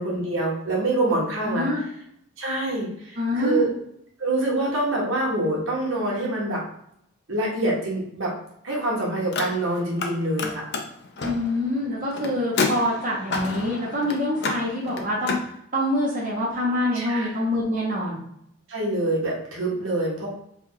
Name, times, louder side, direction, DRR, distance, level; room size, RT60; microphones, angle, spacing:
voice 1, 0.0-1.7 2.4-3.7 4.2-6.6 7.3-8.3 8.6-10.6 16.9-17.3 18.7-20.3, right 1 dB, 60° right, -3 dB, 1.3 m, -25 dB
voice 2, 1.5-1.8 3.1-3.6 11.2-15.4 15.7-18.2, left 1 dB, 40° right, -7 dB, 0.9 m, -25 dB
Car, 9.2-10.1 10.4-15.5, left 4 dB, 50° left, 0.5 m, -30 dB
3.6 x 2.4 x 4.5 m, 0.72 s
head